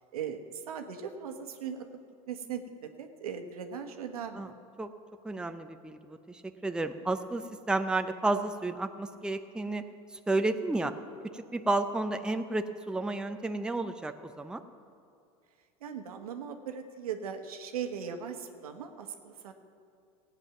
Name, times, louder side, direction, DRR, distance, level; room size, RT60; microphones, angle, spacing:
voice 1, 0.1-1.8 2.3-2.6 3.0-4.5 15.8-19.5, right 7 dB, 90° right, 6 dB, 1.3 m, -39 dB
voice 2, 5.2-6.0 6.3-9.8 10.3-10.9 11.3-14.6, right 2 dB, 5° right, 7 dB, 0.6 m, -31 dB
16.0 x 9.1 x 5.9 m, 2.5 s
hypercardioid pair, 105°, 18 cm